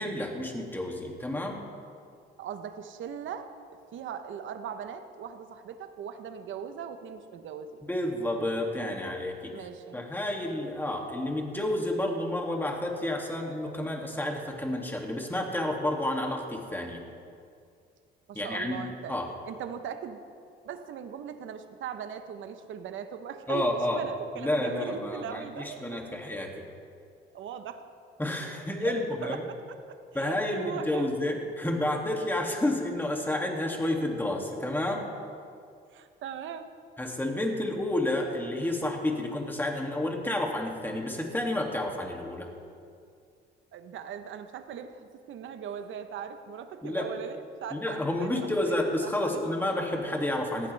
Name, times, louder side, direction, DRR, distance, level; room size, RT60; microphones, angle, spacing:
voice 1, 0.0-1.6 7.8-9.5 9.9-17.0 18.3-19.3 23.5-24.0 24.4-26.5 28.2-29.4 30.1-35.0 37.0-42.5 46.8-47.1 47.7-50.7, left 1 dB, 10° left, 0 dB, 2.5 m, -30 dB
voice 2, 2.4-3.5 3.9-7.8 9.5-10.0 18.3-19.2 19.5-20.2 20.6-23.6 23.9-26.0 26.3-26.4 27.3-27.8 28.8-28.9 29.2-31.1 33.9-34.0 35.9-36.7 43.7-45.0 45.3-49.8, right 8 dB, 75° right, 8 dB, 1.0 m, -39 dB
19.0 x 15.0 x 3.5 m, 2.3 s
cardioid pair, 90°, 20 cm